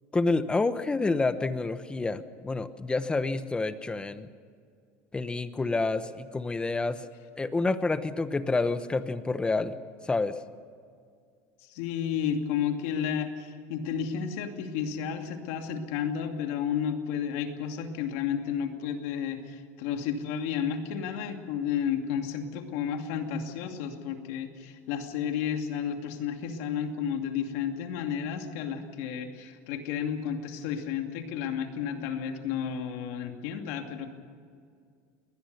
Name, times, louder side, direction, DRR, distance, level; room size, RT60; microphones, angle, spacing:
voice 1, 0.1-4.3 5.1-7.0 7.4-9.8 10.1-10.4, left 3 dB, 10° left, 12 dB, 1.0 m, -28 dB
voice 2, 11.6-34.1, left 8 dB, 75° left, 5 dB, 2.6 m, -32 dB
21.5 x 19.5 x 6.7 m, 2.2 s
supercardioid pair, 135°, 7 cm